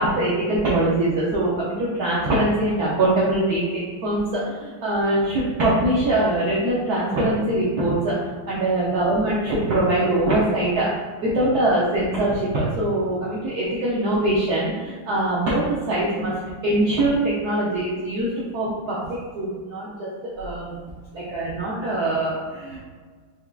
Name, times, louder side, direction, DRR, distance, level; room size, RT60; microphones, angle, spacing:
voice 1, 0.0-8.1 8.5-10.9 11.2-16.3 16.6-20.8 21.1-22.8, right 1 dB, 65° right, -6 dB, 1.0 m, -23 dB
4.6 x 3.4 x 2.3 m, 1.5 s
omnidirectional pair, 2.2 m